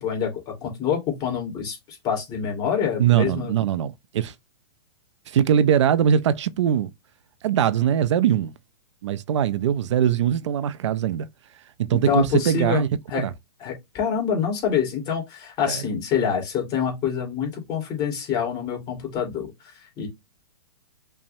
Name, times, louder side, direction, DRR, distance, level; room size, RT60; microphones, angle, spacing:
voice 1, 0.0-3.5 11.9-13.2 13.6-20.1, left 7 dB, 30° left, 2.0 m, -26 dB
voice 2, 3.0-4.3 5.3-6.9 7.4-8.5 9.0-11.3 11.8-12.9 13.1-13.3 15.7-15.8, right 9 dB, 75° right, 0.4 m, -21 dB
5.5 x 2.1 x 2.6 m
hypercardioid pair, 140°, 15 cm